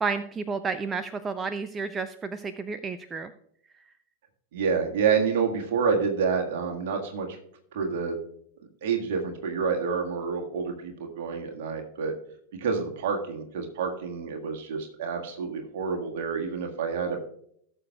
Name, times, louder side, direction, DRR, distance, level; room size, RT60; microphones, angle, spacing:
voice 1, 0.0-3.3, right 4 dB, 20° right, 11 dB, 0.4 m, -31 dB
voice 2, 4.5-7.4 7.7-8.2 8.8-12.1 12.6-17.2, right 5 dB, 55° right, 2 dB, 1.7 m, -28 dB
17.0 x 6.7 x 2.3 m, 0.67 s
figure-of-eight pair, 90°, 0 cm